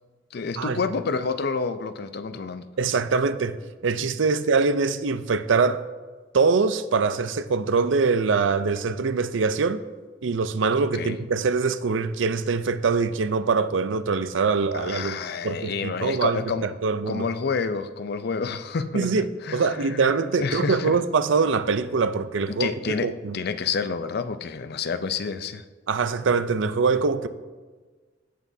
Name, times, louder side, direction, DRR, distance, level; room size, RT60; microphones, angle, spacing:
voice 1, 0.3-2.6 10.9-11.2 14.7-16.7 17.1-20.1 20.4-21.0 22.5-25.6, left 5 dB, 55° left, 0.5 m, -29 dB
voice 2, 2.8-3.6 3.8-5.8 6.3-9.8 10.2-15.2 15.4-17.2 18.9-19.2 19.5-22.7 23.0-23.4 25.9-27.3, right 4 dB, 75° right, 0.5 m, -23 dB
16.5 x 6.1 x 2.7 m
head